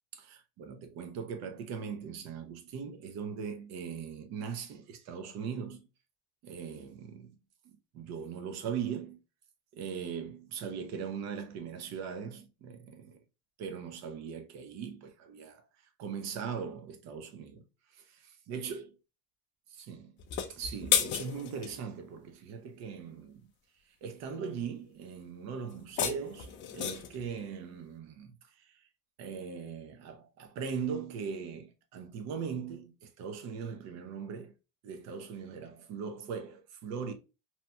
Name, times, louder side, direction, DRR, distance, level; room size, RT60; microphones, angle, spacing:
voice 1, 0.1-5.8 6.4-7.4 7.6-9.2 9.7-13.2 13.6-15.6 16.0-17.6 17.9-18.9 19.7-20.1 20.5-23.5 24.0-28.8 29.2-34.5 34.8-37.1, right 6 dB, 55° right, 0.7 m, -40 dB
sound 1, 20.2-21.7 25.7-27.2, left 9 dB, 35° left, 0.4 m, -32 dB
2.9 x 2.2 x 2.8 m
cardioid pair, 130°, 33 cm